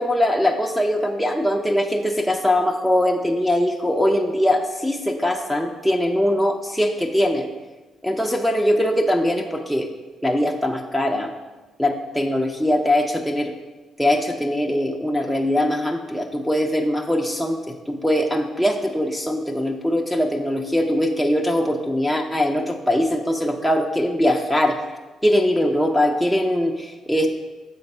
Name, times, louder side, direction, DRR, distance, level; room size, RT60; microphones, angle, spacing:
voice 1, 0.0-7.5 8.0-9.9 10.2-11.3 11.8-13.5 14.0-24.8 25.2-27.3, left 1 dB, ahead, 0 dB, 0.6 m, -21 dB
7.0 x 3.9 x 5.4 m, 1.2 s
cardioid pair, 90°, 0 cm